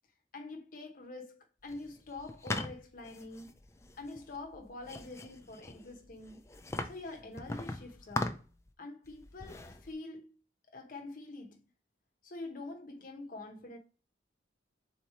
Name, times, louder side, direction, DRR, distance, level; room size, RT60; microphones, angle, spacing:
voice 1, 0.3-3.5 4.0-6.4 6.8-8.4 8.8-10.4 10.7-11.6 12.2-13.8, left 2 dB, 50° left, 0.8 m, -45 dB
sound 1, 1.7-8.7 9.0-9.9, left 2 dB, 15° left, 0.4 m, -41 dB
3.9 x 2.9 x 4.6 m
head